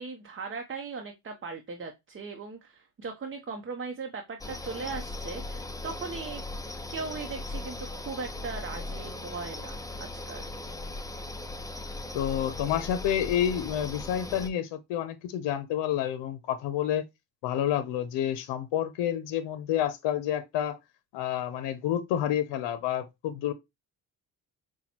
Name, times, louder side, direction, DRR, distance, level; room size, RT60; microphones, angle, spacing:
voice 1, 0.0-6.4 6.9-10.5, right 4 dB, 30° right, 0.8 m, -38 dB
sound 1, 4.4-14.5, left 2 dB, 10° left, 0.5 m, -38 dB
voice 2, 12.1-17.0 17.4-20.8 21.1-23.5, left 10 dB, 80° left, 0.7 m, -29 dB
5.7 x 2.3 x 2.9 m
supercardioid pair, 65°, 42 cm